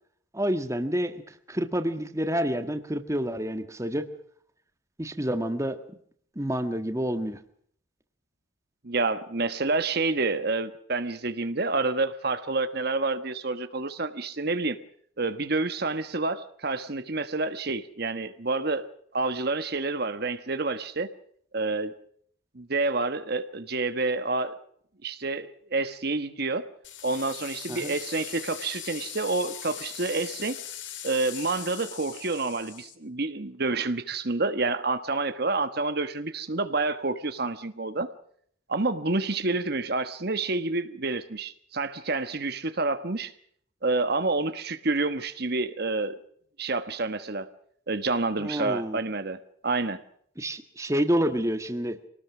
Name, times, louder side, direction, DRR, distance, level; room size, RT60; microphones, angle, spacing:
voice 1, 0.3-4.1 5.0-5.8 6.3-7.4 27.7-27.9 48.4-49.0 50.4-52.0, equal, 15° right, 8 dB, 1.5 m, -28 dB
voice 2, 8.8-14.8 15.2-21.1 21.5-21.9 22.5-24.6 25.0-26.7 27.0-30.6 31.0-38.1 38.7-43.3 43.8-46.2 46.6-47.5 47.9-50.0, right 3 dB, 50° right, 10 dB, 1.3 m, -28 dB
sound 1, 26.8-33.0, left 10 dB, 65° left, 3.0 m, -40 dB
25.5 x 19.0 x 6.1 m, 0.64 s
head